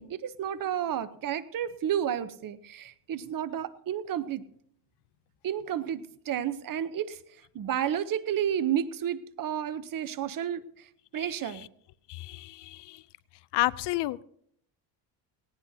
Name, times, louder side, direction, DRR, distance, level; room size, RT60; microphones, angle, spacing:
voice 1, 0.0-4.4 5.4-7.2 7.5-11.7, right 9 dB, 45° right, 13 dB, 0.8 m, -31 dB
voice 2, 12.1-13.0 13.5-14.2, left 17 dB, 65° left, 19 dB, 0.5 m, -30 dB
18.5 x 17.0 x 2.7 m, 0.69 s
cardioid pair, 135°, 45 cm